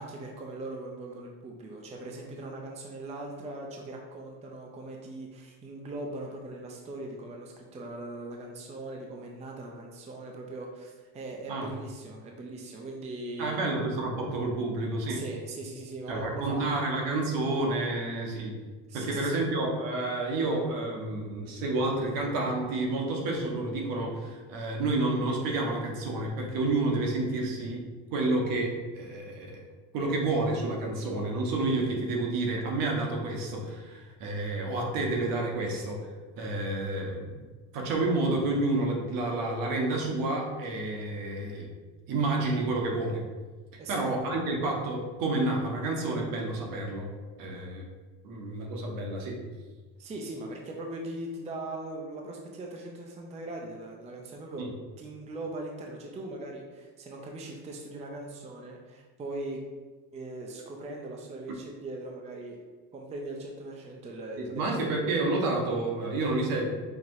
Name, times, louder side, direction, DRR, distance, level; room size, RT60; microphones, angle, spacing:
voice 1, 0.0-13.8 15.1-16.6 18.9-19.4 43.8-44.0 50.0-54.7 55.0-59.6 60.1-62.6 62.9-64.8, right 2 dB, 20° right, 1 dB, 0.4 m, -40 dB
voice 2, 13.4-15.2 16.1-18.6 18.9-27.8 28.1-29.6 29.9-36.1 36.4-37.3 37.7-41.7 42.1-43.2 43.9-47.1 47.4-47.8 48.2-49.4 54.6-54.7 64.4-66.7, right 2 dB, 65° right, 0 dB, 1.1 m, -29 dB
5.8 x 2.8 x 2.6 m, 1.4 s
cardioid pair, 115°, 37 cm